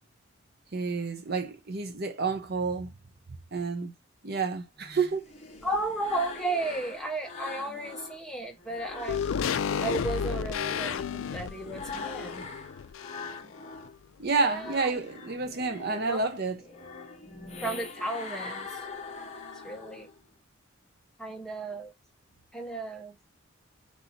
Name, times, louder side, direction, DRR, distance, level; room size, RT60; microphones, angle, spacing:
voice 1, 0.7-2.9 3.5-3.9 4.2-5.3 14.2-16.6, right 4 dB, 50° right, 0.7 m, -29 dB
sound 1, 4.8-8.2 8.6-13.9 14.3-20.2, left 4 dB, 30° left, 0.9 m, -43 dB
voice 2, 5.6-9.2 9.8-12.5 14.4-14.9 16.0-16.2 17.6-18.8 19.6-20.1 21.2-21.9 22.5-23.1, right 2 dB, 5° left, 0.8 m, -34 dB
sound 2, 9.1-13.6 13.8-13.9, left 7 dB, 70° left, 0.3 m, -32 dB
4.6 x 2.9 x 3.9 m
head